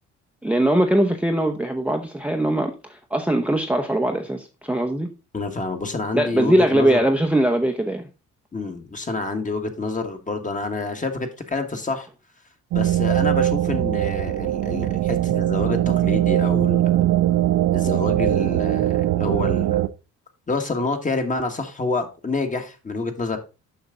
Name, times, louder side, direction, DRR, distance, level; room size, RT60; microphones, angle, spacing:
voice 1, 0.4-5.1 6.1-8.1, right 1 dB, 5° right, 0.8 m, -21 dB
voice 2, 5.3-7.0 8.5-12.1 12.7-17.0 17.7-19.8 20.5-23.4, left 3 dB, 25° left, 1.5 m, -28 dB
sound 1, 12.7-19.9, right 13 dB, 70° right, 0.6 m, -21 dB
7.2 x 5.7 x 3.7 m
cardioid pair, 90°, 30 cm